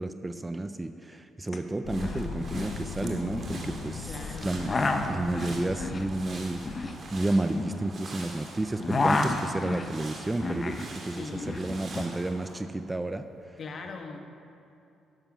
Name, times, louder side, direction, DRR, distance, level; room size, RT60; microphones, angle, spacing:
voice 1, 0.0-4.2 4.4-4.7 5.1-6.6 7.1-13.6, right 2 dB, 15° right, 9 dB, 0.4 m, -31 dB
sound 1, 1.5-1.6 1.8-2.2 2.5-3.7 4.4-8.3 8.6-10.9 11.2-12.1, left 3 dB, 30° left, 0.8 m, -30 dB
sound 2, 1.8-7.7, left 5 dB, 80° left, 0.6 m, -40 dB
sound 3, 1.9-12.6, right 2 dB, 50° right, 1.9 m, -45 dB
voice 2, 4.1-5.0 11.1-11.7 13.6-14.3, left 3 dB, 50° left, 4 dB, 1.2 m, -40 dB
11.0 x 6.9 x 6.0 m, 2.6 s
cardioid pair, 90°, 0 cm